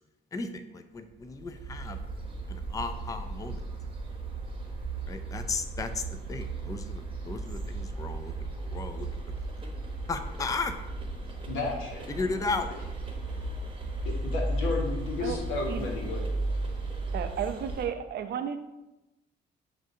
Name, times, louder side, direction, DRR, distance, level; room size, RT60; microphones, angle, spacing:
voice 1, 0.3-2.0 2.5-3.6 5.1-9.1 10.1-10.7 12.1-12.7, left 3 dB, 15° left, 8 dB, 0.3 m, -35 dB
sound 1, 1.2-17.9, right 2 dB, 25° right, 0.9 m, -35 dB
voice 2, 11.5-12.2 14.0-16.2, left 3 dB, 90° left, 0 dB, 1.1 m, -33 dB
voice 3, 17.1-18.6, right 8 dB, 55° right, 8 dB, 0.4 m, -33 dB
7.4 x 2.5 x 2.7 m, 0.99 s
cardioid pair, 90°, 20 cm